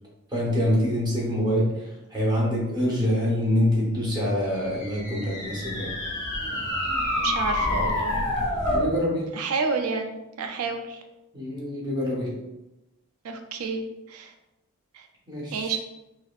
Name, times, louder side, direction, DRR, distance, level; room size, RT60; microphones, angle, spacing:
voice 1, 0.3-5.9 8.7-9.3 11.3-12.4 15.3-15.7, equal, 20° right, -4 dB, 0.9 m, -25 dB
sound 1, 4.5-8.9, left 1 dB, 20° left, 0.8 m, -27 dB
voice 2, 7.2-8.2 9.3-11.0 13.2-14.3 14.9-15.1 15.5-15.8, right 4 dB, 80° right, 5 dB, 0.4 m, -30 dB
4.9 x 2.0 x 2.4 m, 0.97 s
head